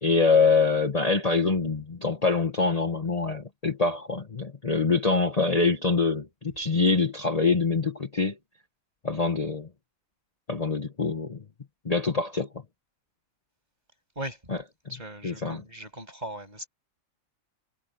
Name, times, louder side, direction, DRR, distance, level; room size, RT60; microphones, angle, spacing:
voice 1, 0.0-8.4 9.0-9.7 10.5-11.4 11.8-12.5 14.5-14.6 15.2-15.6, left 4 dB, 30° left, 1.3 m, -24 dB
voice 2, 14.9-16.7, right 1 dB, 30° right, 7.1 m, -38 dB
omnidirectional pair, 1.4 m